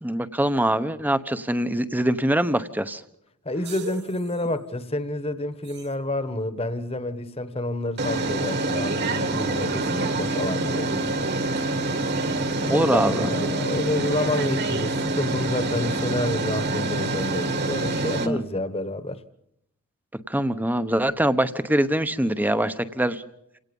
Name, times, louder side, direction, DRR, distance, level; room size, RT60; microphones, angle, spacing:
voice 1, 0.0-3.0 12.6-13.3 18.0-18.4 20.3-23.2, right 1 dB, 10° right, 0.9 m, -23 dB
voice 2, 3.4-10.9 12.6-19.2, left 1 dB, 25° left, 1.3 m, -29 dB
sound 1, 3.6-4.1 5.8-5.9 8.0-18.3, right 2 dB, 50° right, 2.0 m, -26 dB
28.5 x 18.0 x 5.4 m
head